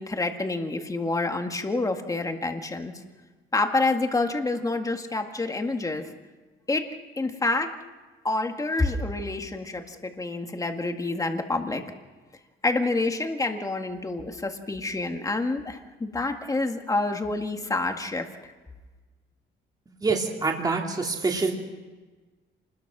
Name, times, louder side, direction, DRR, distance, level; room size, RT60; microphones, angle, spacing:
voice 1, 0.0-2.9 3.5-6.1 6.7-6.9 7.2-7.8 8.2-11.8 12.6-18.5, left 2 dB, 15° left, 5 dB, 1.9 m, -28 dB
voice 2, 20.0-21.5, right 4 dB, 20° right, 1 dB, 2.6 m, -26 dB
28.5 x 21.0 x 6.1 m, 1.3 s
cardioid pair, 145°, 20 cm